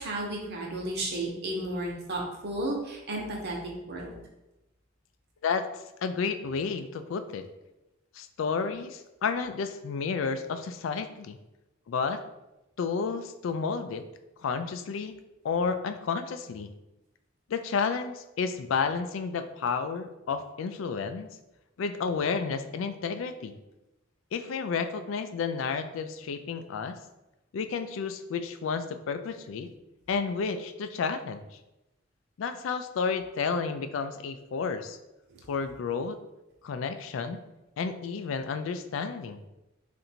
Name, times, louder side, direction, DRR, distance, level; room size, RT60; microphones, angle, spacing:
voice 1, 0.0-3.6 3.8-4.2, right 1 dB, 55° right, -1 dB, 1.0 m, -33 dB
voice 2, 6.0-7.4 8.2-11.4 11.9-12.2 12.8-14.0 14.4-15.1 15.4-16.7 17.5-21.3 21.8-23.6 24.3-27.0 27.5-29.7 30.1-31.5 32.4-35.0 35.5-36.2 36.6-37.4 37.8-39.4, left 5 dB, 75° left, 9 dB, 0.3 m, -31 dB
3.8 x 2.6 x 4.3 m, 0.97 s
head